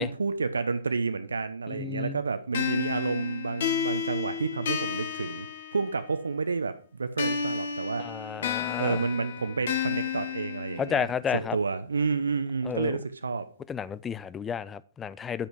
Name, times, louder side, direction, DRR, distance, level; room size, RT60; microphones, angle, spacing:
voice 1, 0.0-8.1 8.7-13.5, right 4 dB, 80° right, 0.7 m, -30 dB
voice 2, 1.7-2.2 8.0-9.0 10.8-11.6 12.7-13.0 13.7-15.5, left 7 dB, 15° left, 0.4 m, -32 dB
sound 1, 2.5-6.2 7.2-11.2, left 7 dB, 60° left, 1.5 m, -32 dB
10.0 x 5.3 x 4.7 m
figure-of-eight pair, 125°, 0 cm